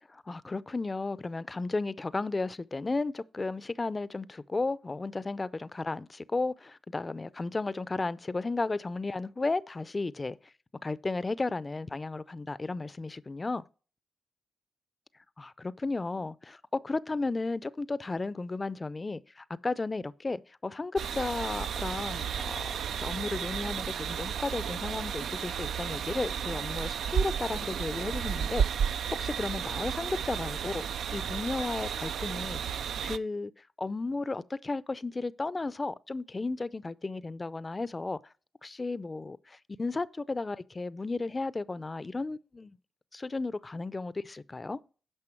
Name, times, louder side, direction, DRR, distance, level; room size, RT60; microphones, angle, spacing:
voice 1, 0.1-10.4 10.8-13.6 15.4-28.6 29.2-32.6 33.0-33.5 33.8-38.2 38.6-42.8 43.1-44.8, left 3 dB, 30° left, 0.4 m, -34 dB
sound 1, 21.0-33.2, right 8 dB, 85° right, 0.3 m, -33 dB
9.8 x 5.7 x 4.4 m
cardioid pair, 60°, 0 cm